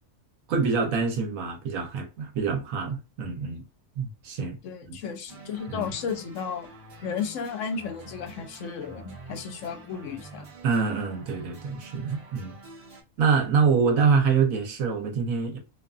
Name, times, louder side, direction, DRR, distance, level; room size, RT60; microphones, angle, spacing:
voice 1, 0.5-3.6 4.0-4.6 4.9-5.0 5.7-5.9 10.6-12.5 13.2-15.6, right 5 dB, 80° right, 1.2 m, -25 dB
voice 2, 4.6-6.7 7.0-10.5, left 6 dB, 70° left, 0.9 m, -33 dB
sound 1, 5.3-13.0, right 2 dB, 50° right, 0.7 m, -47 dB
2.6 x 2.5 x 2.3 m
omnidirectional pair, 1.4 m